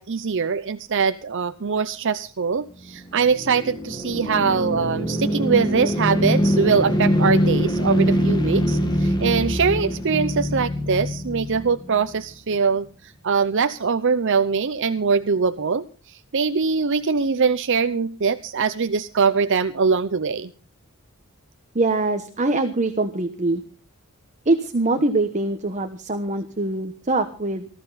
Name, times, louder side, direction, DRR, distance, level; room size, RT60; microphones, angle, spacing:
voice 1, 0.0-20.5, right 5 dB, 55° right, 11 dB, 0.7 m, -22 dB
sound 1, 2.9-12.1, equal, 20° left, 1.9 m, -23 dB
voice 2, 21.7-23.6 24.4-27.7, right 2 dB, 35° right, 7 dB, 1.2 m, -23 dB
19.5 x 14.0 x 4.1 m, 0.37 s
head